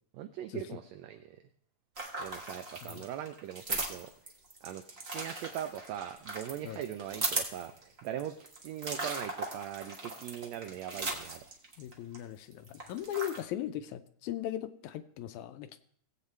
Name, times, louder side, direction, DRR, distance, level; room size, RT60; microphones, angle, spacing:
voice 1, 0.1-1.4 2.2-4.1 4.6-4.8 5.1-11.5, right 11 dB, 90° right, 9 dB, 1.5 m, -40 dB
sound 1, 2.0-12.2 12.5-13.4, right 2 dB, 45° right, 0.7 m, -38 dB
voice 2, 11.8-15.8, left 12 dB, 80° left, 11 dB, 1.8 m, -38 dB
18.5 x 8.1 x 3.2 m, 0.63 s
omnidirectional pair, 3.6 m